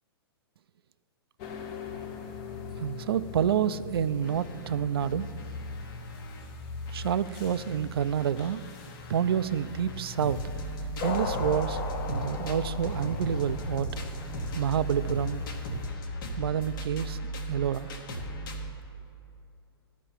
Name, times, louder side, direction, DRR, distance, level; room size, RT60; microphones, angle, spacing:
sound 1, 1.4-15.9, left 4 dB, 35° left, 0.8 m, -40 dB
voice 1, 2.8-5.3 6.9-8.6 9.1-10.5 11.0-11.8 12.1-14.0 14.5-15.5 16.4-17.9, right 9 dB, 70° right, 15 dB, 0.4 m, -28 dB
sound 2, 4.2-6.4 6.9-18.7, right 1 dB, 55° left, 1.2 m, -37 dB
11.5 x 4.5 x 7.1 m, 2.7 s
hypercardioid pair, 115°, 13 cm